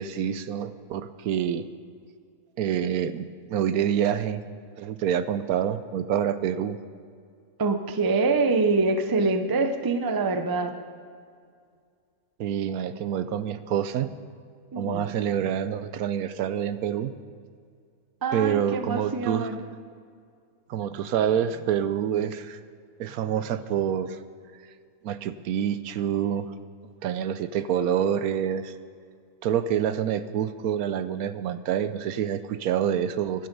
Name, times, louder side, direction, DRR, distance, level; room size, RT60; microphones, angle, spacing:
voice 1, 0.0-1.6 2.6-4.4 4.8-6.8 12.4-14.1 14.8-17.1 18.3-19.5 20.7-22.6 23.0-24.2 25.0-26.5 27.0-28.7 29.4-33.5, right 9 dB, 75° right, 13 dB, 1.1 m, -27 dB
voice 2, 7.6-10.7 14.7-15.1 18.2-19.6, right 3 dB, 25° right, 7 dB, 0.4 m, -25 dB
15.0 x 11.0 x 5.3 m, 2.2 s
omnidirectional pair, 1.6 m